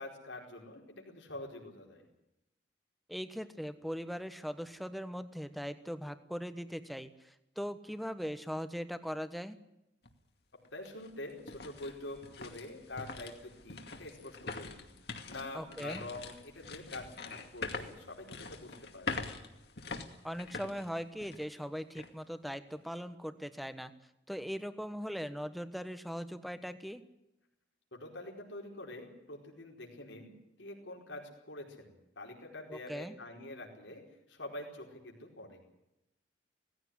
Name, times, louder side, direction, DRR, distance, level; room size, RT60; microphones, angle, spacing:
voice 1, 0.0-2.1 10.7-14.8 15.3-19.2 27.9-30.3 30.6-34.0 34.3-35.6, left 2 dB, 80° left, 1 dB, 4.6 m, -46 dB
voice 2, 3.1-9.6 15.5-16.0 20.2-23.9 24.3-27.0 32.7-33.1, equal, ahead, 10 dB, 1.2 m, -40 dB
sound 1, 10.0-10.1 10.6-21.6 21.9-22.1 22.7-23.0, left 3 dB, 60° left, 2.4 m, -44 dB
18.5 x 15.5 x 9.8 m, 0.89 s
head